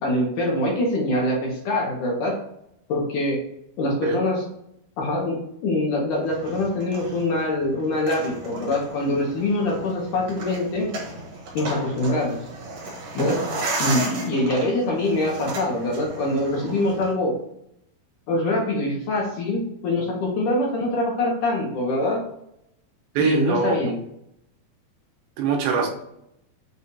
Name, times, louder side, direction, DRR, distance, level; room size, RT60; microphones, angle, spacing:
voice 1, 0.0-2.4 2.9-3.4 3.8-4.5 5.0-10.9 11.5-12.4 13.1-13.5 13.8-17.4 18.3-22.2 23.2-24.0, left 1 dB, 70° left, -2 dB, 2.0 m, -24 dB
sound 1, 6.2-17.1, right 2 dB, 60° right, 1.8 m, -34 dB
voice 2, 23.2-23.8 25.4-25.9, right 5 dB, 80° right, 1 dB, 2.7 m, -22 dB
6.7 x 2.4 x 2.7 m, 0.79 s
omnidirectional pair, 4.5 m